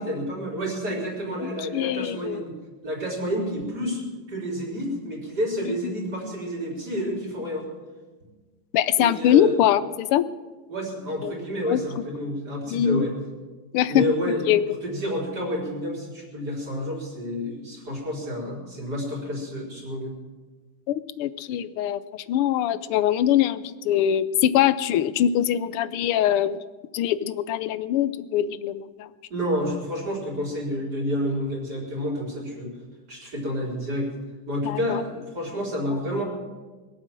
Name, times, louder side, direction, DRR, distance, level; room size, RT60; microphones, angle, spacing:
voice 1, 0.0-2.5 2.8-4.0 4.3-7.6 8.2-8.3 9.0-9.6 10.7-13.1 13.9-20.1 29.3-32.7 33.1-34.1 34.5-36.3, equal, 45° right, -2 dB, 4.5 m, -29 dB
voice 2, 1.4-2.4 8.7-10.3 11.2-11.3 11.7-11.8 12.7-13.1 13.7-14.1 14.5-14.6 20.9-26.6 26.9-29.1 34.6-35.0, left 11 dB, 90° left, 15 dB, 1.6 m, -23 dB
21.5 x 8.1 x 7.5 m, 1.3 s
omnidirectional pair, 2.4 m